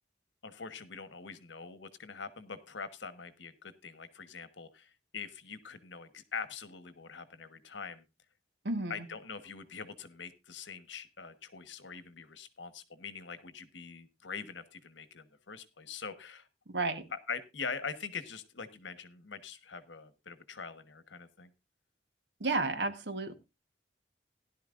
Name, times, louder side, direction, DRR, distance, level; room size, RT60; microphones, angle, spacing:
voice 1, 0.4-8.0 8.9-16.5 17.1-21.5, left 5 dB, 80° left, 12 dB, 1.2 m, -43 dB
voice 2, 8.6-9.0 16.7-17.0 22.4-23.3, right 3 dB, 65° right, 10 dB, 1.2 m, -32 dB
16.5 x 11.5 x 2.5 m, 0.25 s
head